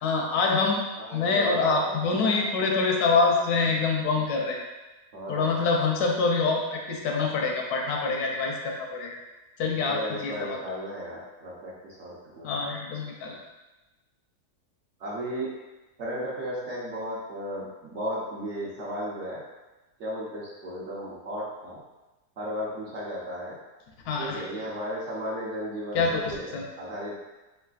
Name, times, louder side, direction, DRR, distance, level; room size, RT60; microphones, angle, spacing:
voice 1, 0.0-0.8 1.1-4.6 5.3-9.2 9.6-10.6 12.4-13.3 24.1-24.4 25.9-26.6, left 4 dB, 80° left, 0 dB, 1.1 m, -25 dB
voice 2, 1.0-2.5 5.1-5.7 9.8-12.5 15.0-15.6 16.0-19.4 20.0-21.8 22.4-23.6 24.2-26.5 26.8-27.2, equal, 55° right, -6 dB, 0.9 m, -35 dB
3.4 x 3.2 x 2.3 m, 1.1 s
omnidirectional pair, 1.7 m